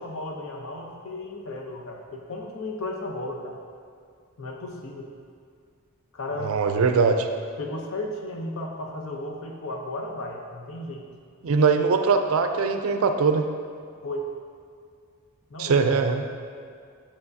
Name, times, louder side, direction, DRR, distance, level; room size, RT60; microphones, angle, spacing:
voice 1, 0.0-3.6 4.4-5.1 6.1-6.6 7.6-11.0 14.0-14.3 15.5-15.8, left 1 dB, 60° left, 1 dB, 0.7 m, -34 dB
voice 2, 6.4-7.3 11.4-13.4 15.6-16.2, right 5 dB, 70° right, 7 dB, 0.4 m, -21 dB
6.8 x 5.6 x 2.7 m, 2.3 s
head